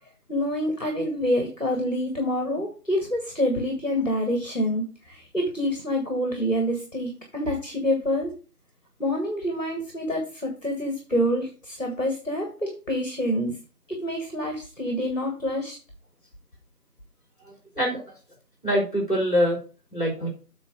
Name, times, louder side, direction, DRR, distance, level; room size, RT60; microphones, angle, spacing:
voice 1, 0.3-8.3 9.0-13.5 13.9-15.8, equal, 55° left, 3 dB, 1.7 m, -27 dB
voice 2, 17.4-18.2 18.6-19.6 19.9-20.3, equal, 35° left, 0 dB, 3.6 m, -25 dB
8.3 x 3.8 x 6.3 m, 0.36 s
figure-of-eight pair, 180°, 47 cm